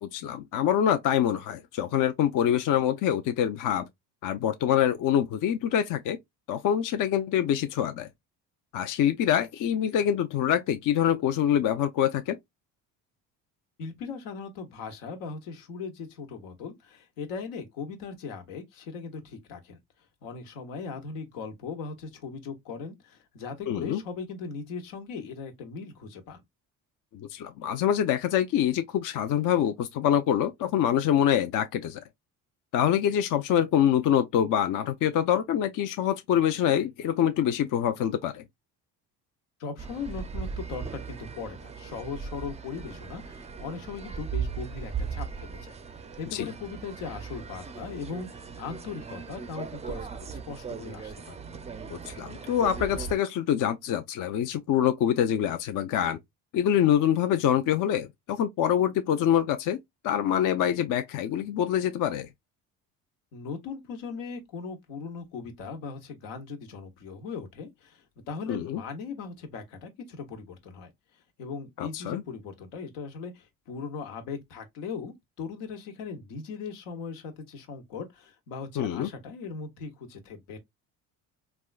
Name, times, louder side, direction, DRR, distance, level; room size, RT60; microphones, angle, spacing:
voice 1, 0.0-3.9 4.2-6.2 6.5-8.1 8.7-12.4 23.7-24.0 27.1-32.0 32.7-38.4 46.3-46.5 51.9-56.2 56.5-59.8 60.0-62.3 68.5-68.8 71.8-72.2 78.8-79.1, left 10 dB, 50° left, 0.5 m, -25 dB
voice 2, 13.8-19.8 20.2-26.4 39.6-45.7 46.2-51.4 63.3-70.9 71.4-80.6, left 5 dB, 80° left, 1.1 m, -39 dB
sound 1, 39.8-53.1, right 6 dB, 15° right, 0.4 m, -38 dB
3.5 x 2.3 x 2.4 m
supercardioid pair, 70°, 42 cm